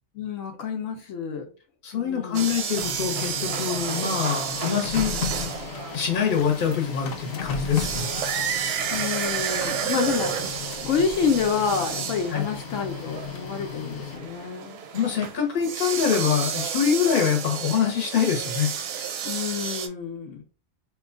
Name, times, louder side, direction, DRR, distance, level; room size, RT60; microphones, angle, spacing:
voice 1, 0.1-1.5 1.9-2.6 8.9-14.8 19.2-20.4, left 6 dB, 80° left, 1.0 m, -28 dB
voice 2, 1.8-5.2 5.9-8.1 12.3-12.5 14.9-18.7, left 7 dB, 45° left, 1.0 m, -24 dB
sound 1, 2.3-19.9, right 7 dB, 65° right, 0.7 m, -33 dB
Printer, 2.4-14.5, left 7 dB, 60° left, 0.6 m, -36 dB
sound 2, 2.7-2.9 3.4-3.6 4.2-4.3 4.7-4.8 5.3-5.7 6.6-6.8 7.3-7.4 7.8-12.0 12.2-12.3 13.1-13.2 15.2-15.7 15.9-18.0, right 7 dB, 90° right, 1.0 m, -32 dB
3.0 x 2.2 x 3.6 m
omnidirectional pair, 1.3 m